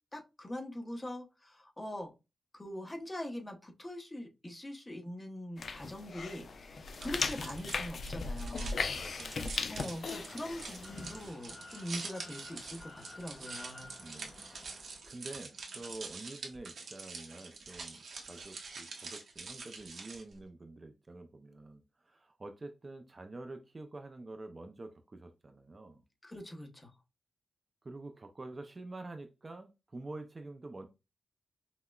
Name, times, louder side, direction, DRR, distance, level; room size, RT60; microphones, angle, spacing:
voice 1, 0.1-2.1 2.5-8.8 9.7-13.9 26.2-26.9, left 1 dB, 20° left, 0.8 m, -43 dB
sound 1, 5.6-11.3, left 4 dB, 65° left, 0.4 m, -38 dB
sound 2, 6.9-20.4, right 4 dB, 75° right, 0.8 m, -46 dB
voice 2, 8.9-9.5 14.0-26.0 27.8-30.9, right 2 dB, 35° right, 0.4 m, -48 dB
sound 3, 9.7-15.0, left 2 dB, 40° left, 1.1 m, -53 dB
5.6 x 2.1 x 2.2 m
wide cardioid pair, 100°, 0 cm